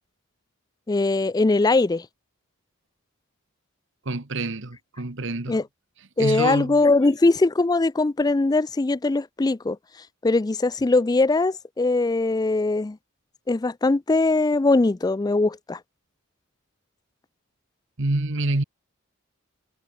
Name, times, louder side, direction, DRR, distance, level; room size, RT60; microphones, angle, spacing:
voice 1, 0.9-2.1 5.5-5.6 6.2-9.8 10.2-13.0 13.5-15.8, left 3 dB, 20° left, 0.4 m, -21 dB
voice 2, 4.0-5.6 6.2-6.8 18.0-18.6, right 2 dB, 60° right, 1.5 m, -27 dB
head